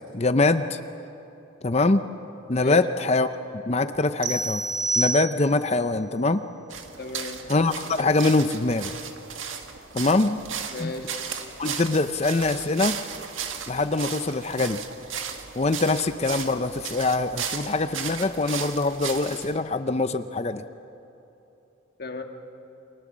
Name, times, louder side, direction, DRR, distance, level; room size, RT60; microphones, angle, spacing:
voice 1, 0.1-0.8 1.6-2.1 2.5-3.3 3.7-4.6 5.0-6.4 7.5-8.9 9.9-10.4 10.8-10.9 11.6-13.0 13.7-14.8 15.6-20.6, left 2 dB, 30° left, 10 dB, 0.6 m, -23 dB
sound 1, 4.2-5.8, right 2 dB, 55° right, 1.5 m, -27 dB
sound 2, 6.7-19.6, right 7 dB, 75° right, 1.8 m, -35 dB
voice 2, 7.0-7.5 10.7-11.2 22.0-22.2, left 3 dB, 50° left, 4 dB, 1.9 m, -35 dB
29.5 x 23.5 x 7.4 m, 2.9 s
head